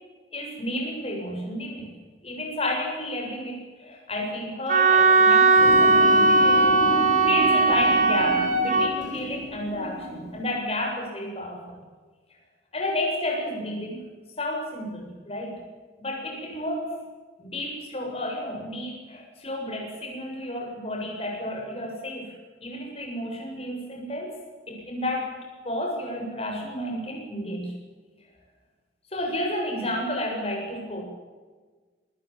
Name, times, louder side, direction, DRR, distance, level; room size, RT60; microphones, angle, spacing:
voice 1, 0.3-1.9 2.2-11.8 12.7-14.0 14.4-15.6 16.0-16.9 17.4-22.3 22.6-24.3 24.7-25.4 25.6-27.7 29.1-31.0, left 1 dB, 35° left, 0 dB, 7.8 m, -31 dB
Wind instrument woodwind instrument, 4.7-8.9, right 3 dB, 45° right, 4.0 m, -18 dB
sound 1, 5.6-10.6, equal, 85° right, 7.9 m, -33 dB
27.5 x 16.0 x 8.8 m, 1.4 s
head